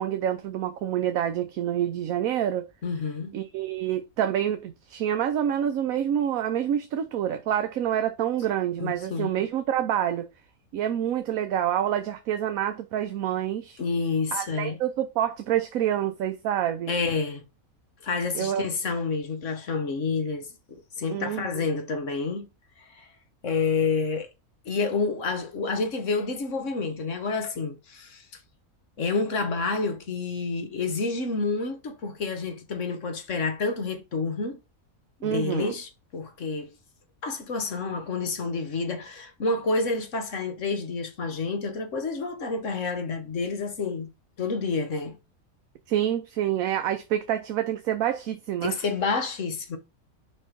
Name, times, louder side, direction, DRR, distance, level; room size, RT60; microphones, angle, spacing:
voice 1, 0.0-2.7 3.3-10.3 10.7-13.8 14.3-16.9 18.3-18.7 21.1-21.7 35.2-35.8 45.9-48.7, right 10 dB, 70° right, 1.1 m, -27 dB
voice 2, 2.8-3.3 8.8-9.3 13.8-14.8 16.9-17.4 18.0-22.5 23.0-23.1 23.4-24.3 24.6-28.2 29.0-34.6 35.2-36.7 37.2-44.1 44.4-45.2 48.6-49.8, left 4 dB, 60° left, 1.4 m, -29 dB
5.0 x 4.2 x 5.1 m
omnidirectional pair, 1.6 m